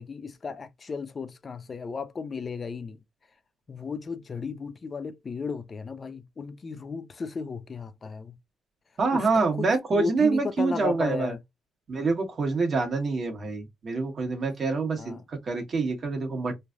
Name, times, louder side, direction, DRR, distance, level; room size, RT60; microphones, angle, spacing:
voice 1, 0.0-3.0 3.7-8.4 9.1-11.4 15.0-15.2, left 5 dB, 40° left, 0.4 m, -35 dB
voice 2, 9.0-11.3 11.9-16.5, right 4 dB, 45° right, 1.2 m, -26 dB
3.2 x 2.4 x 2.4 m
cardioid pair, 90°, 0 cm